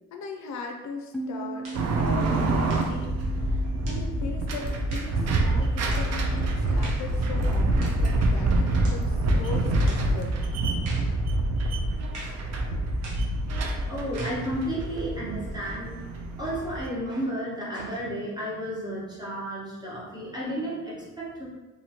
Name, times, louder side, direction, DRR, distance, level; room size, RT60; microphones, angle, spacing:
voice 1, 0.1-1.7 2.0-10.3, left 4 dB, 65° left, 3 dB, 0.5 m, -38 dB
sound 1, 1.1-6.5, right 3 dB, 5° left, 0.4 m, -40 dB
sound 2, 1.6-1.9 2.6-3.0 3.8-4.1 4.9-5.1 5.9-6.1 6.8-7.1 7.8-8.0 8.8-9.0 9.9-10.1 10.8-11.1 12.1-12.4 13.0-13.3 14.2-14.4, right 1 dB, 80° right, 1.0 m, -42 dB
sound 3, 1.7-16.9, right 2 dB, 60° right, 0.5 m, -26 dB
voice 2, 13.7-15.9 16.4-21.4, equal, 15° right, -7 dB, 1.2 m, -32 dB
2.8 x 2.6 x 2.8 m, 1.1 s
cardioid pair, 90°, 30 cm